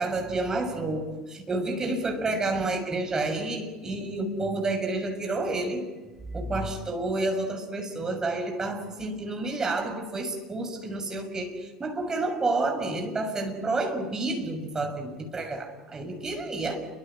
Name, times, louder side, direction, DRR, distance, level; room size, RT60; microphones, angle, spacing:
voice 1, 0.0-5.8 6.3-16.8, right 2 dB, 20° right, 6.5 m, -29 dB
29.5 x 25.0 x 6.4 m
figure-of-eight pair, 75°, 3 cm